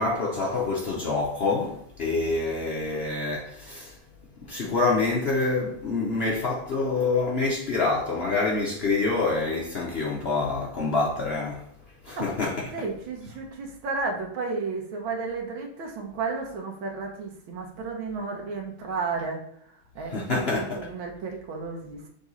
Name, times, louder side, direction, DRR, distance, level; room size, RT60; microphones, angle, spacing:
voice 1, 0.0-3.9 4.5-11.6 12.0-12.7 20.1-20.8, left 3 dB, 65° left, 0.6 m, -26 dB
voice 2, 12.7-19.4 20.0-20.3 20.8-22.1, right 4 dB, 70° right, 1.9 m, -32 dB
6.9 x 3.9 x 4.0 m
omnidirectional pair, 2.3 m